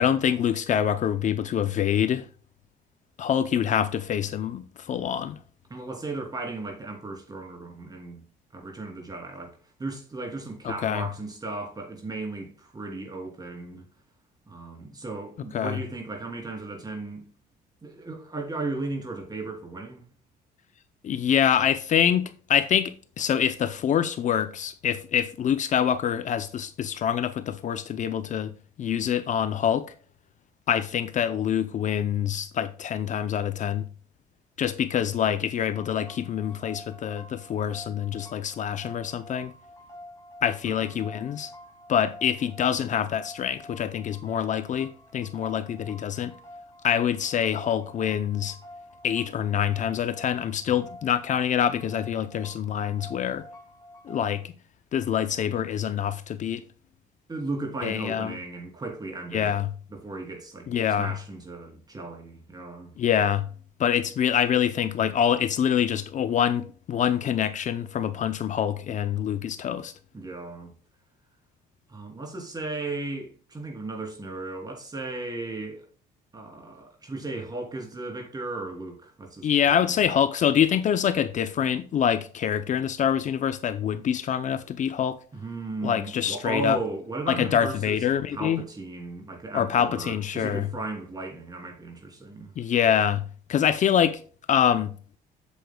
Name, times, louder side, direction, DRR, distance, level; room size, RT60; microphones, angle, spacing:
voice 1, 0.0-2.3 3.2-5.4 10.8-11.0 15.5-15.8 21.0-28.5 28.8-29.9 30.7-33.9 34.6-39.5 40.4-41.5 41.9-46.3 46.8-48.6 49.0-53.4 54.0-54.5 54.9-56.6 57.8-58.3 59.3-59.7 60.7-61.1 63.0-63.5 63.8-69.9 79.4-85.2 85.8-86.8 87.3-88.6 89.5-90.7 92.6-93.2 93.5-94.2 94.5-94.9, left 9 dB, 45° left, 0.6 m, -25 dB
voice 2, 5.7-8.2 8.5-13.8 14.5-17.3 17.8-20.0 40.8-40.9 57.3-59.6 59.9-60.7 61.0-62.9 70.1-70.7 71.9-75.8 76.3-79.5 79.8-79.9 85.3-88.0 88.3-92.5, right 2 dB, 25° right, 3.1 m, -35 dB
sound 1, 35.7-54.4, left 1 dB, 20° left, 2.6 m, -48 dB
8.3 x 7.9 x 2.3 m
cardioid pair, 110°, 17 cm